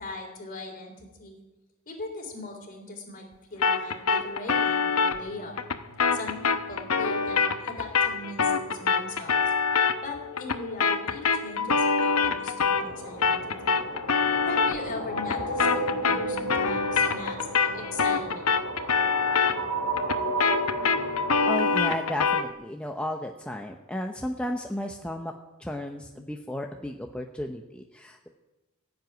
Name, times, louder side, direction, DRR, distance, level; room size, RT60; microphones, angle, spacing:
voice 1, 0.0-1.4 1.9-3.2 3.5-5.6 6.1-9.5 10.0-13.8 14.5-17.5 17.7-18.5 18.8-18.9, left 2 dB, 40° left, 1 dB, 3.7 m, -39 dB
sound 1, 3.6-13.0 13.2-22.5, left 5 dB, 85° left, 0.9 m, -26 dB
sound 2, 12.7-21.5, right 1 dB, 85° right, 2.3 m, -33 dB
voice 2, 21.5-25.3 25.6-28.3, left 1 dB, 5° left, 2 dB, 0.7 m, -33 dB
16.0 x 7.8 x 9.3 m, 1.1 s
head